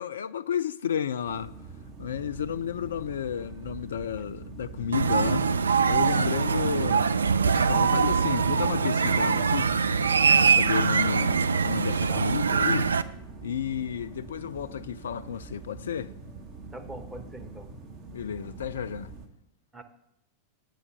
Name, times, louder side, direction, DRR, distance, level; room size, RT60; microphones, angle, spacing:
voice 1, 0.0-1.5 2.0-5.5 5.9-9.7 10.3-12.9 13.4-16.1 18.1-19.1, left 8 dB, 65° left, 0.3 m, -32 dB
sound 1, 1.2-19.3, right 4 dB, 40° right, 1.2 m, -44 dB
sound 2, 4.9-13.0, right 5 dB, 70° right, 0.3 m, -23 dB
voice 2, 16.7-17.7 19.7-19.8, right 1 dB, 10° right, 1.0 m, -42 dB
8.3 x 5.6 x 6.7 m
figure-of-eight pair, 90°, 0 cm